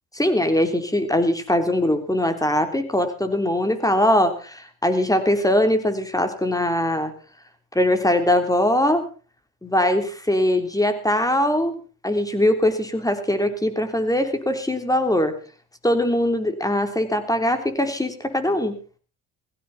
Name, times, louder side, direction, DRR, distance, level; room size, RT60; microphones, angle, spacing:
voice 1, 0.1-7.1 7.8-9.0 9.6-15.3 15.8-18.8, left 1 dB, 10° left, 7 dB, 3.4 m, -21 dB
17.0 x 16.0 x 4.2 m, 0.36 s
supercardioid pair, 65°, 40 cm